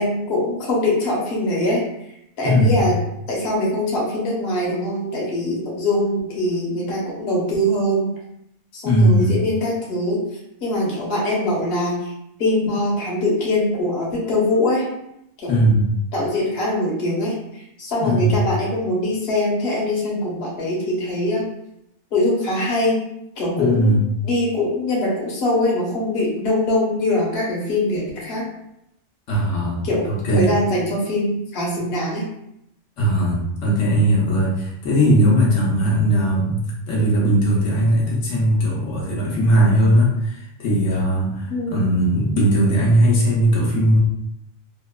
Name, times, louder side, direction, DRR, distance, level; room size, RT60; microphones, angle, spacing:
voice 1, 0.0-1.8 2.4-3.0 3.3-8.1 8.7-10.2 10.6-12.1 12.4-14.9 15.4-15.7 16.1-21.5 22.1-23.0 23.4-28.4 29.8-32.2 41.5-41.8, left 1 dB, 60° left, -4 dB, 1.0 m, -22 dB
voice 2, 2.4-2.8 8.8-9.4 15.5-15.9 18.0-18.4 23.5-24.0 29.3-30.5 33.0-44.0, equal, 90° left, -4 dB, 1.0 m, -18 dB
2.8 x 2.0 x 2.2 m, 0.78 s
omnidirectional pair, 1.2 m